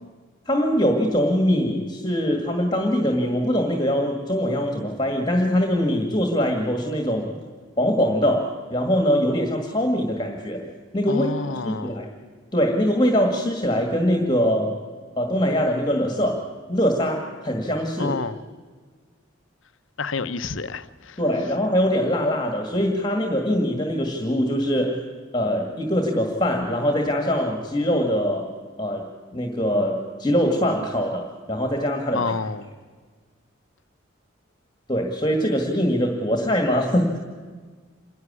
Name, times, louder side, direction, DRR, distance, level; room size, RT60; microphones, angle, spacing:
voice 1, 0.5-7.3 7.8-10.7 10.9-12.1 12.5-14.7 15.2-16.4 16.7-18.1 21.2-25.0 25.3-28.5 28.8-32.3 34.9-37.2, equal, 20° left, 1.8 m, -23 dB
voice 2, 11.1-12.0 18.0-18.4 20.0-21.2 32.1-32.7, left 4 dB, 70° left, 0.8 m, -29 dB
27.0 x 11.0 x 9.7 m
head